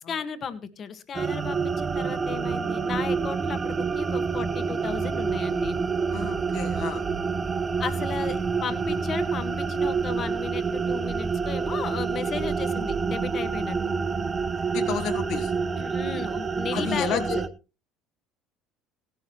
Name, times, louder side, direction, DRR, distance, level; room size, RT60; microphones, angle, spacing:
voice 1, 0.1-5.8 7.8-13.8 15.8-17.3, left 6 dB, 40° left, 12 dB, 1.6 m, -35 dB
sound 1, 1.1-17.5, right 5 dB, 25° right, 0.8 m, -27 dB
voice 2, 6.1-7.0 14.7-15.5 16.7-17.4, left 7 dB, 65° left, 7 dB, 2.0 m, -31 dB
16.5 x 11.5 x 3.1 m, 0.31 s
supercardioid pair, 100°, 0 cm